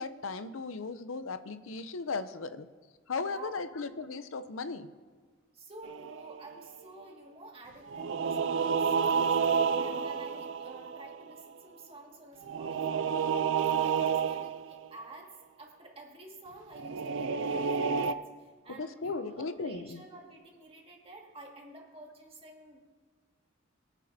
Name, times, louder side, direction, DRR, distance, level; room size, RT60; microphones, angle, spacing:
voice 1, 0.0-2.7 3.1-4.9 18.8-20.0, left 4 dB, 85° left, 12 dB, 0.6 m, -36 dB
voice 2, 3.2-3.5 5.5-9.4 9.8-22.8, right 2 dB, 30° right, -1 dB, 2.0 m, -50 dB
sound 1, 5.8-6.7 7.9-11.4 12.4-14.9 16.8-18.1, right 6 dB, 65° right, 0.5 m, -30 dB
22.5 x 9.1 x 2.7 m, 1.5 s
head